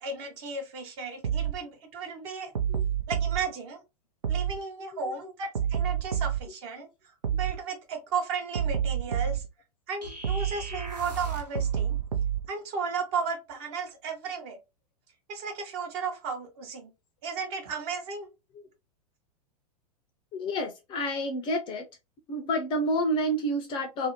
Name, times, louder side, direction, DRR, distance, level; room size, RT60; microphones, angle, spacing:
voice 1, 0.0-2.5 3.1-3.8 4.3-6.9 7.3-9.4 9.9-11.9 12.5-14.6 15.3-16.9 17.2-18.3, right 5 dB, 40° right, 0.8 m, -34 dB
sound 1, 1.2-1.6 2.5-3.4 4.2-4.6 5.5-6.5 7.2-7.6 8.5-9.5 10.2-10.6 11.5-12.5, right 8 dB, 70° right, 0.6 m, -27 dB
sound 2, 10.0-11.6, right 5 dB, 90° right, 0.9 m, -37 dB
voice 2, 20.3-21.8 22.3-24.1, equal, 25° left, 0.5 m, -29 dB
2.5 x 2.0 x 2.8 m
figure-of-eight pair, 95°, 20 cm